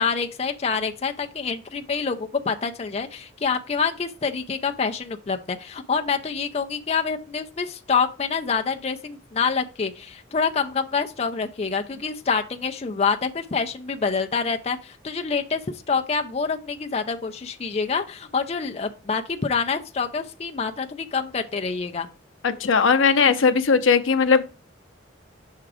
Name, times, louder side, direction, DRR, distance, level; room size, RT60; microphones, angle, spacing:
voice 1, 0.0-22.1, left 5 dB, 30° left, 0.4 m, -26 dB
voice 2, 22.4-24.5, left 5 dB, 85° left, 0.6 m, -18 dB
5.8 x 3.7 x 4.8 m
head